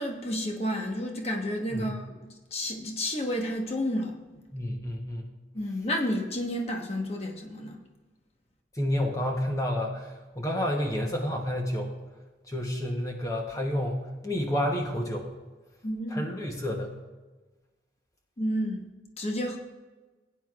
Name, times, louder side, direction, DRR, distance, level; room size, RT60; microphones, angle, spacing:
voice 1, 0.0-4.2 5.5-7.8 15.8-16.3 18.4-18.9 19.2-19.6, equal, 35° left, 2 dB, 1.2 m, -31 dB
voice 2, 4.5-5.3 8.8-11.9 12.5-15.3 16.1-16.9, left 1 dB, 20° left, 1 dB, 0.9 m, -30 dB
17.0 x 9.3 x 2.4 m, 1.3 s
head